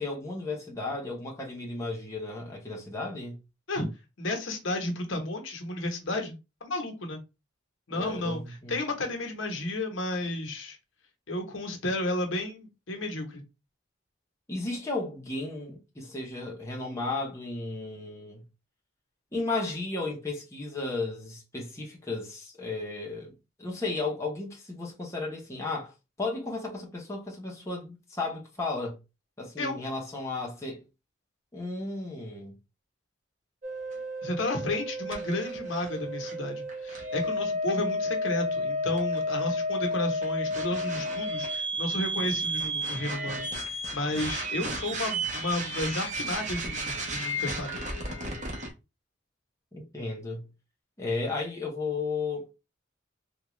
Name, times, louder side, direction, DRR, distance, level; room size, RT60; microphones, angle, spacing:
voice 1, 0.0-3.4 7.9-8.8 14.5-18.4 19.3-23.3 23.6-25.9 26.2-29.0 29.4-30.8 31.5-32.5 49.7-50.5 51.0-52.5, left 3 dB, 15° left, 0.8 m, -34 dB
voice 2, 4.2-6.3 6.6-7.2 7.9-10.8 11.3-13.4 29.6-29.8 34.2-47.8, left 2 dB, 85° left, 0.9 m, -32 dB
sound 1, 33.6-48.7, equal, 40° right, 0.8 m, -32 dB
3.5 x 2.3 x 3.0 m
head